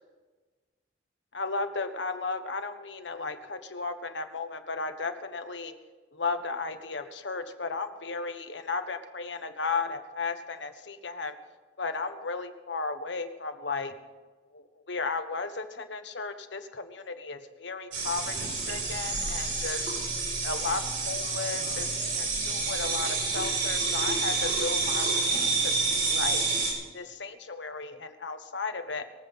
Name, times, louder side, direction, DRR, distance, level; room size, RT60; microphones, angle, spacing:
voice 1, 1.3-5.7 6.1-11.4 11.8-13.9 14.5-19.9 20.4-21.9 22.1-26.4 26.9-29.0, left 4 dB, 75° left, 7 dB, 1.3 m, -35 dB
sound 1, 17.9-26.7, right 3 dB, 65° right, 5.2 m, -28 dB
22.5 x 8.1 x 5.6 m, 1.3 s
head